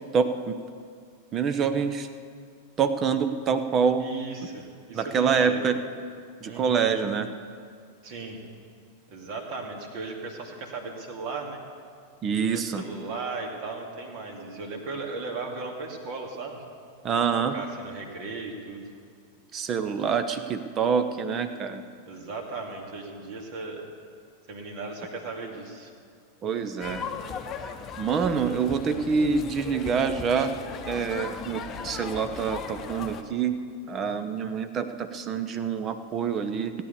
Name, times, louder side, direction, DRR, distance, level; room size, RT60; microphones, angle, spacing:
voice 1, 0.1-0.6 1.3-2.1 2.8-4.0 4.9-5.8 6.4-7.3 12.2-12.8 17.0-17.5 19.5-21.8 26.4-27.0 28.0-30.5 30.9-33.6 33.9-36.7, right 6 dB, 30° right, 10 dB, 0.9 m, -26 dB
voice 2, 4.0-5.6 6.4-6.9 8.0-8.4 9.1-11.6 12.4-16.6 17.2-18.9 22.1-23.9 24.5-25.9, right 3 dB, 45° right, 2 dB, 2.3 m, -37 dB
sound 1, 26.8-33.2, left 6 dB, 30° left, 0.9 m, -37 dB
17.0 x 9.5 x 6.8 m, 2.2 s
figure-of-eight pair, 90°, 0 cm